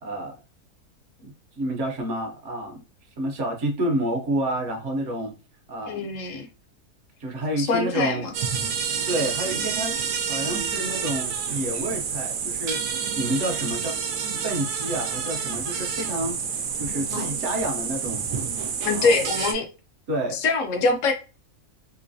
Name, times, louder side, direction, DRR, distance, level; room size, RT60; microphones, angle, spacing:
voice 1, 0.0-0.3 1.2-2.8 3.2-5.3 5.7-6.1 7.2-8.2 9.1-9.9 10.3-12.8 13.1-13.9 14.4-16.4 16.8-18.3 18.9-19.2 20.1-20.4, right 1 dB, 60° right, 0.9 m, -29 dB
voice 2, 5.9-6.5 7.6-8.3 16.9-17.3 18.8-19.7 20.3-21.1, left 4 dB, 65° left, 0.8 m, -24 dB
sound 1, 8.3-19.5, right 6 dB, 85° right, 1.1 m, -28 dB
3.1 x 2.8 x 2.6 m
omnidirectional pair, 1.6 m